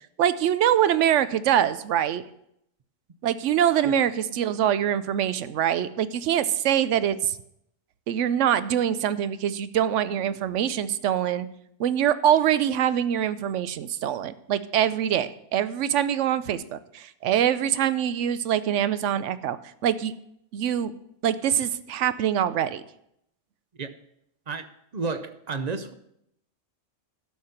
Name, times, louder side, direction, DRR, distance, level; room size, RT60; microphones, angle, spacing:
voice 1, 0.2-2.2 3.2-7.4 8.1-11.5 11.8-19.6 19.8-20.1 20.5-20.9 21.2-22.8, right 10 dB, 75° right, 14 dB, 0.9 m, -24 dB
voice 2, 24.9-25.9, right 4 dB, 45° right, 10 dB, 0.6 m, -31 dB
11.5 x 6.6 x 5.7 m, 0.76 s
omnidirectional pair, 1.3 m